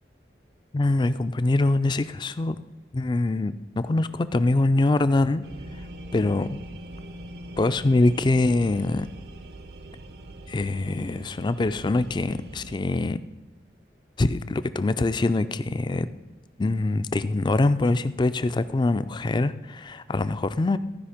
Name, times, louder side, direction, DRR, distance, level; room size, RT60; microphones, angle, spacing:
voice 1, 0.7-2.6 2.9-5.4 6.1-6.5 7.6-9.1 10.5-13.2 14.2-16.1 16.6-20.8, left 2 dB, 25° left, 13 dB, 0.4 m, -24 dB
sound 1, 5.4-12.8, right 1 dB, 60° right, 0.7 m, -42 dB
14.5 x 5.2 x 5.0 m, 1.2 s
head